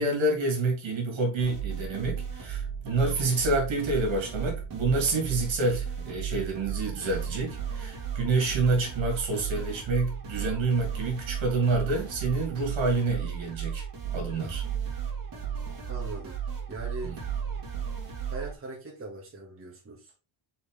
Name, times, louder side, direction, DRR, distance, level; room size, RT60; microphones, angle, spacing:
voice 1, 0.0-13.8 14.1-14.6 17.0-17.1, right 3 dB, 65° right, 2.9 m, -28 dB
sound 1, 1.4-18.5, right 7 dB, 45° right, 2.9 m, -35 dB
voice 2, 15.9-16.4 16.7-17.1 18.3-20.1, right 2 dB, 25° right, 1.9 m, -40 dB
6.7 x 4.2 x 3.4 m
wide cardioid pair, 175°, 49 cm